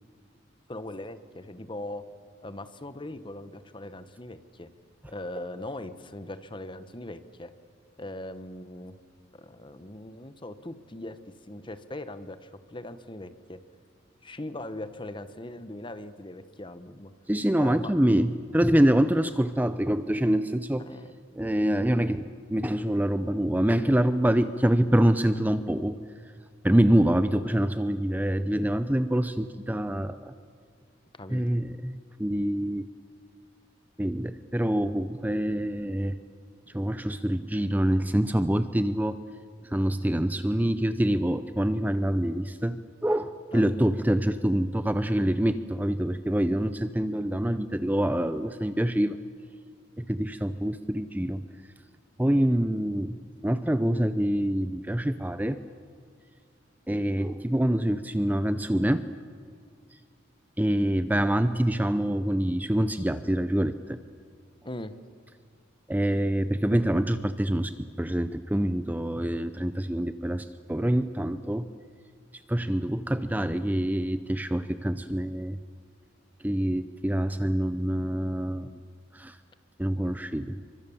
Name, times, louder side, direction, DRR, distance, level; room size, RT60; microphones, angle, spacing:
voice 1, 0.7-2.0 2.4-4.7 5.1-7.5 8.0-9.0 9.3-11.2 11.5-13.6 14.2-17.1 17.6-17.9 20.8-21.1 31.1-31.6 43.5-43.7 64.6-64.9, left 1 dB, 25° left, 11 dB, 1.1 m, -40 dB
voice 2, 17.3-20.8 21.4-26.0 26.6-30.3 31.3-32.9 34.0-36.2 36.7-39.2 39.6-49.2 50.0-51.4 52.2-55.6 56.9-59.0 60.6-64.0 65.9-71.7 72.5-75.6 76.4-78.7 79.1-79.4 79.8-80.6, right 1 dB, 10° right, 11 dB, 0.6 m, -26 dB
28.5 x 24.5 x 7.2 m, 2.1 s
head